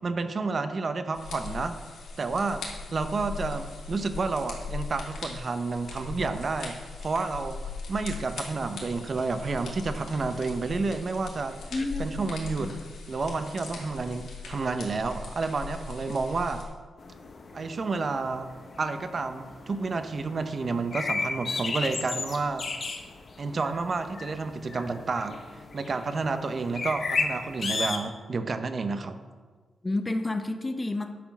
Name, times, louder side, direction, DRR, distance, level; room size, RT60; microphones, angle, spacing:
voice 1, 0.0-2.6 2.9-7.6 7.9-11.6 12.0-12.7 13.1-16.6 17.5-18.5 18.8-22.7 23.4-25.4 25.7-29.2, right 4 dB, 40° right, 9 dB, 0.7 m, -30 dB
sound 1, 1.1-16.6, left 4 dB, 85° left, 2.4 m, -40 dB
voice 2, 11.7-12.3 12.6-12.7 29.8-31.1, left 2 dB, 20° left, 7 dB, 0.8 m, -30 dB
sound 2, 17.0-28.0, left 4 dB, 45° left, 1.1 m, -35 dB
10.0 x 6.2 x 6.0 m, 1.5 s
wide cardioid pair, 130°, 0 cm